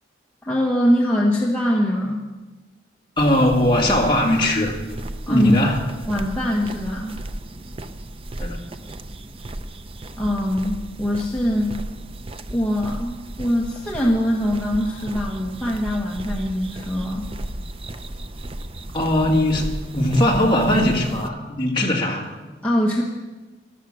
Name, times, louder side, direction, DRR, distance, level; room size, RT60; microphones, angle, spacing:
voice 1, 0.4-2.3 5.3-5.7 6.1-7.2 10.2-11.8 12.5-17.3 22.6-23.0, equal, 5° left, -4 dB, 1.3 m, -22 dB
voice 2, 3.2-4.8 5.3-5.8 8.4-8.6 18.9-22.3, left 1 dB, 25° left, -1 dB, 2.1 m, -20 dB
sound 1, 3.2-21.3, right 1 dB, 30° right, 0.5 m, -35 dB
13.5 x 12.0 x 6.4 m, 1.2 s
head